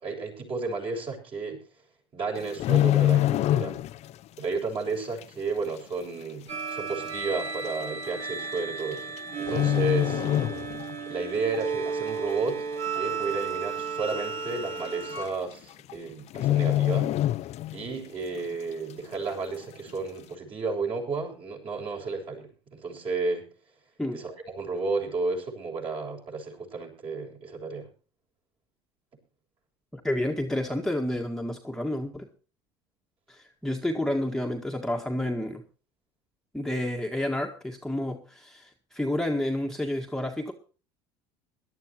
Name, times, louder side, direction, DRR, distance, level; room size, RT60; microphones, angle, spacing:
voice 1, 0.0-1.6 2.1-3.8 4.4-10.2 11.1-12.7 12.9-17.1 17.7-23.5 24.1-27.9, right 3 dB, 40° right, 0 dB, 7.1 m, -32 dB
sound 1, 2.4-4.1 4.4-4.6 5.2-5.3 6.2-6.3 6.5-6.6 7.4-7.7 8.8-9.2 9.5-11.0 11.4-11.6 12.1-12.6 12.9-13.0 13.3-13.4 13.8-13.9 14.9-15.0 15.2-15.5 15.8-15.9 16.3-18.0 18.3-18.4, left 13 dB, 50° left, 0.6 m, -25 dB
sound 2, 6.5-15.3, right 5 dB, 55° right, 3.9 m, -33 dB
voice 2, 29.9-32.3 33.3-35.6 36.5-40.5, left 1 dB, 5° left, 1 dB, 1.8 m, -30 dB
21.5 x 12.0 x 3.0 m, 0.36 s
hypercardioid pair, 80°, 14 cm